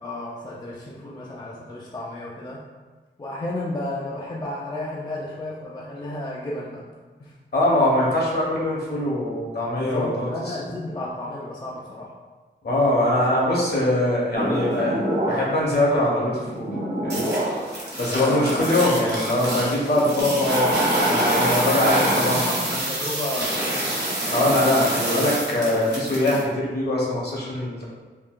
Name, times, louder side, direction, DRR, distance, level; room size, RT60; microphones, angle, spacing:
voice 1, 0.0-2.6 3.2-6.8 7.2-7.3 9.7-12.1 18.1-18.6 22.2-23.9, left 1 dB, 20° left, -4 dB, 0.4 m, -32 dB
voice 2, 7.5-10.5 12.6-16.7 17.0-17.2 17.9-22.4 24.2-27.8, left 1 dB, 55° left, -4 dB, 0.9 m, -22 dB
sound 1, 14.3-15.7 16.1-26.4, right 1 dB, 60° right, 0.8 m, -25 dB
3.6 x 2.3 x 2.4 m, 1.3 s
wide cardioid pair, 90°, 19 cm